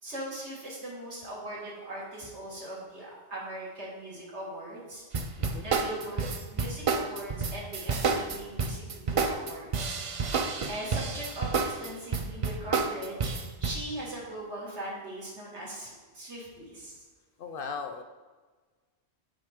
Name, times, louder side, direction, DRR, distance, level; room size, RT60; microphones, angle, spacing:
voice 1, 0.0-5.0 5.3-10.0 10.4-17.0, right 1 dB, 90° right, -5 dB, 2.3 m, -40 dB
sound 1, 5.1-13.8, right 4 dB, 55° right, 0.3 m, -29 dB
voice 2, 17.4-18.0, left 5 dB, 60° left, 7 dB, 0.6 m, -37 dB
7.6 x 5.0 x 3.6 m, 1.4 s
omnidirectional pair, 1.1 m